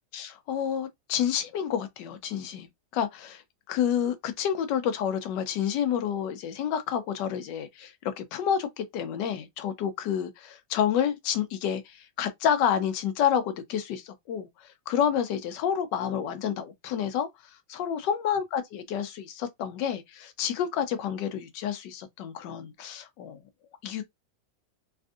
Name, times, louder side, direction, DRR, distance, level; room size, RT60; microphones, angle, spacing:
voice 1, 0.1-2.7 2.9-3.4 3.7-14.5 14.9-17.3 17.7-23.4 23.8-24.0, left 9 dB, 80° left, 1.3 m, -29 dB
3.4 x 2.5 x 2.3 m
omnidirectional pair, 1.9 m